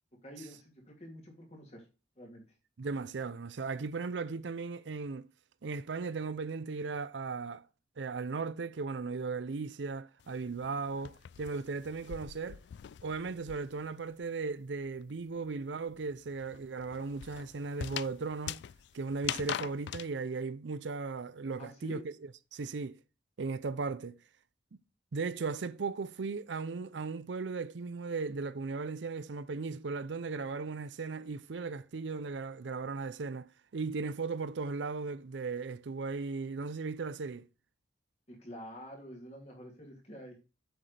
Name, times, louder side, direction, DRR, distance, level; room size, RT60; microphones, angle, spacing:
voice 1, 0.2-1.8 2.2-2.4 21.6-22.0 38.3-40.4, equal, 35° left, 2.7 m, -48 dB
voice 2, 2.8-5.3 5.6-7.6 8.0-12.6 13.0-18.6 18.9-22.1 22.5-23.0 23.4-24.2 25.1-37.5, right 4 dB, 75° right, 0.5 m, -37 dB
sound 1, 10.2-14.0 14.2-20.1, left 10 dB, 70° left, 0.3 m, -42 dB
7.9 x 6.2 x 3.3 m
head